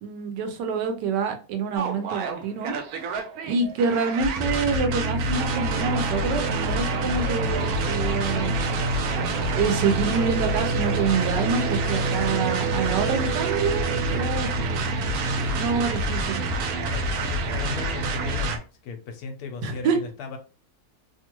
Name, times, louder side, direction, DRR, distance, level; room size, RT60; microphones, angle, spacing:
voice 1, 0.0-2.7 3.5-8.6 9.5-14.5 15.5-16.5 19.6-20.0, right 5 dB, 90° right, 6 dB, 1.3 m, -27 dB
sound 1, 1.8-18.6, right 2 dB, 70° right, 1.0 m, -26 dB
voice 2, 16.7-20.4, left 5 dB, 70° left, 5 dB, 1.1 m, -37 dB
3.0 x 2.3 x 2.9 m, 0.35 s
omnidirectional pair, 1.8 m